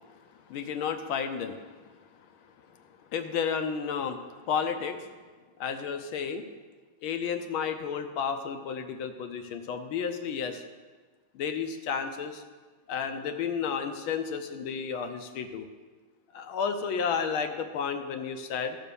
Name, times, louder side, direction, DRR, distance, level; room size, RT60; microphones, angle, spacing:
voice 1, 0.5-1.6 3.1-4.2 4.5-5.1 5.6-6.5 7.0-10.6 11.3-12.4 12.9-15.7 16.3-18.8, left 6 dB, 75° left, 7 dB, 1.5 m, -32 dB
13.0 x 4.4 x 6.7 m, 1.4 s
omnidirectional pair, 2.4 m